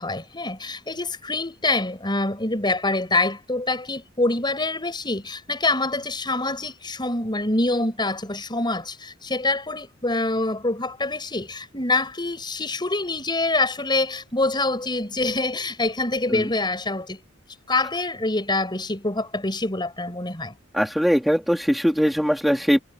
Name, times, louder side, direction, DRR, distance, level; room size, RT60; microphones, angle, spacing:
voice 1, 0.0-17.2 17.7-20.5, left 2 dB, 25° left, 5.9 m, -25 dB
voice 2, 20.7-22.8, equal, ahead, 4.0 m, -21 dB
head